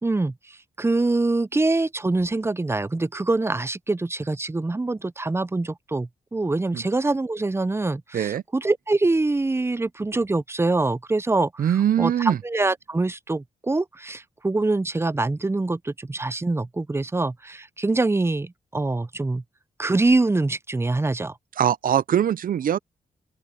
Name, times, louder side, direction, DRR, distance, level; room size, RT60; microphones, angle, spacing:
voice 1, 0.0-11.7 12.0-19.4 19.8-21.3, right 2 dB, 15° right, 0.6 m, -24 dB
voice 2, 11.6-12.4 21.6-22.8, right 10 dB, 65° right, 0.6 m, -22 dB
open air
cardioid pair, 60°, 15 cm